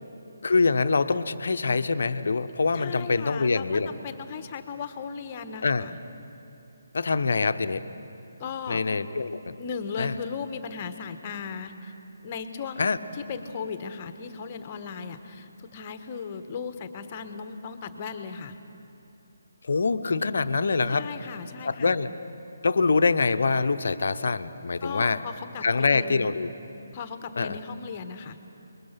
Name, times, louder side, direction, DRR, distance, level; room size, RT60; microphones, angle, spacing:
voice 1, 0.4-3.9 5.6-5.9 6.9-7.8 8.7-9.6 10.0-10.1 12.8-13.0 19.6-21.1 21.6-22.1 22.6-25.2 25.6-26.5 27.4-27.6, left 4 dB, 55° left, 10 dB, 0.9 m, -24 dB
voice 2, 2.7-6.0 8.4-8.8 9.6-11.9 12.2-18.6 20.9-22.0 24.8-26.4 26.9-28.4, left 6 dB, 30° left, 9 dB, 1.3 m, -37 dB
27.0 x 21.5 x 5.9 m, 2.9 s
figure-of-eight pair, 145°, 0 cm